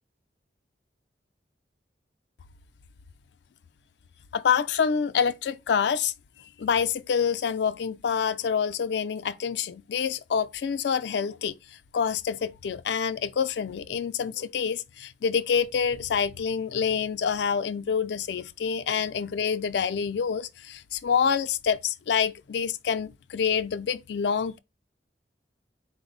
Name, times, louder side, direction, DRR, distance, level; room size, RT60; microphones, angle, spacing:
voice 1, 4.3-6.1 6.6-11.6 11.9-24.6, left 7 dB, 70° left, 0.4 m, -27 dB
4.3 x 2.0 x 3.8 m
head